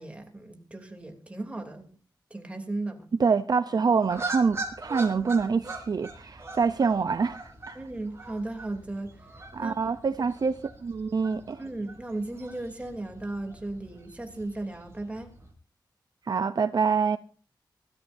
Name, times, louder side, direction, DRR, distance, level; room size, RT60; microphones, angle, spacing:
voice 1, 0.0-1.9 2.3-3.1 7.7-9.1 9.6-9.8 10.2-10.3 11.6-15.3, right 2 dB, 15° right, 3.0 m, -36 dB
voice 2, 3.2-7.8 9.5-11.6 16.3-17.2, right 5 dB, 55° right, 0.6 m, -26 dB
sound 1, 4.0-15.5, right 3 dB, 35° right, 5.0 m, -42 dB
24.0 x 13.5 x 2.7 m
wide cardioid pair, 150°, 8 cm